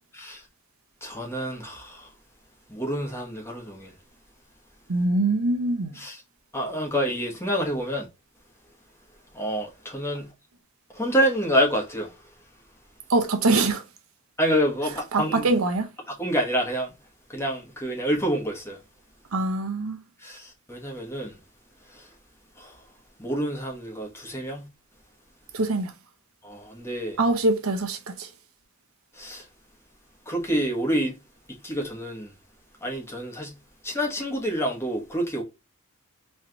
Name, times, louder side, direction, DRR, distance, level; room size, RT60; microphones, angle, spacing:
voice 1, 1.0-2.1 2.7-3.9 6.0-6.2 6.5-8.1 9.3-10.3 10.9-12.1 14.4-15.4 16.2-16.9 17.3-18.8 20.2-21.4 22.6-22.7 23.2-24.7 26.4-27.2 29.2-29.4 30.3-31.1 31.6-32.3 32.8-33.5 33.8-35.4, equal, 10° left, 1.2 m, -27 dB
voice 2, 4.9-6.0 13.1-13.8 15.1-15.9 19.3-20.0 25.5-25.9 27.2-28.3, right 2 dB, 75° right, 0.8 m, -23 dB
3.2 x 3.2 x 3.8 m
head